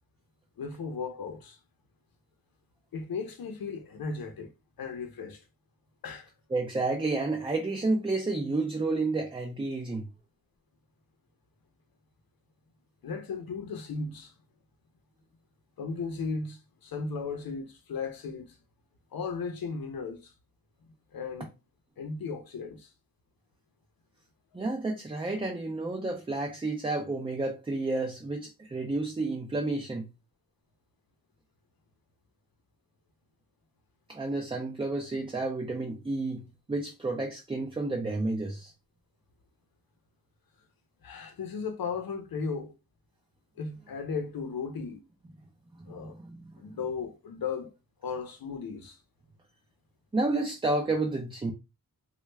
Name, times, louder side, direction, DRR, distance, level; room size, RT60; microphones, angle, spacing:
voice 1, 0.6-1.6 2.9-4.5 4.8-5.4 6.0-6.3 13.0-14.3 15.8-18.6 19.1-20.3 21.1-21.5 22.0-22.9 41.0-42.7 43.6-45.0 45.9-46.2 46.6-47.7 48.0-49.0, left 5 dB, 85° left, 0.7 m, -36 dB
voice 2, 6.5-10.1 24.5-30.1 34.1-38.7 45.8-46.4 50.1-51.5, right 2 dB, 15° right, 0.4 m, -31 dB
3.2 x 2.3 x 3.2 m
wide cardioid pair, 160°, 34 cm